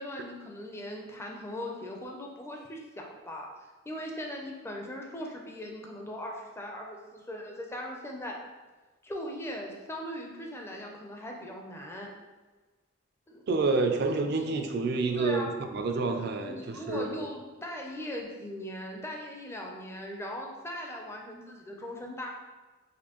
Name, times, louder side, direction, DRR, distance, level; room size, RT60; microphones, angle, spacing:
voice 1, 0.0-8.4 9.0-12.1 13.3-13.5 14.3-14.5 15.2-15.5 16.5-22.3, equal, 15° left, 0 dB, 0.4 m, -39 dB
voice 2, 13.5-17.2, right 3 dB, 55° right, 5 dB, 0.4 m, -28 dB
4.1 x 2.6 x 2.9 m, 1.2 s
head